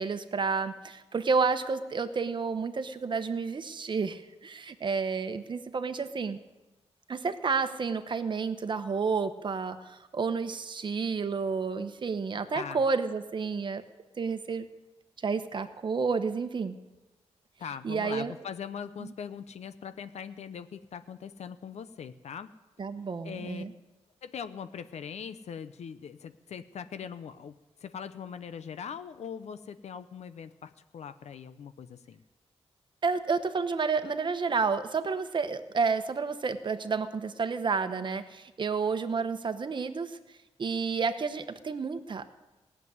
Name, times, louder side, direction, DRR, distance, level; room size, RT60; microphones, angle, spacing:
voice 1, 0.0-6.4 7.1-13.8 14.2-14.7 15.2-16.8 17.8-18.3 19.0-19.1 22.8-23.7 33.0-40.2 40.6-42.3, right 5 dB, 45° right, 9 dB, 1.0 m, -30 dB
voice 2, 17.6-22.5 23.2-23.6 24.2-27.5 27.8-32.2, left 7 dB, 75° left, 11 dB, 0.7 m, -41 dB
17.5 x 7.6 x 9.6 m, 1.1 s
wide cardioid pair, 125°, 11 cm